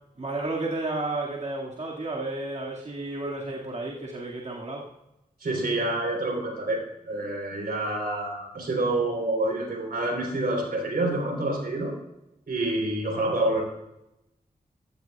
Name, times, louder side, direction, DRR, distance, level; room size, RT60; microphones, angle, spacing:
voice 1, 0.2-4.9, right 2 dB, 50° right, -4 dB, 2.1 m, -32 dB
voice 2, 5.4-11.9 12.5-13.6, right 2 dB, 80° right, 1 dB, 3.9 m, -27 dB
15.0 x 13.0 x 2.4 m, 0.90 s
cardioid pair, 50°, 16 cm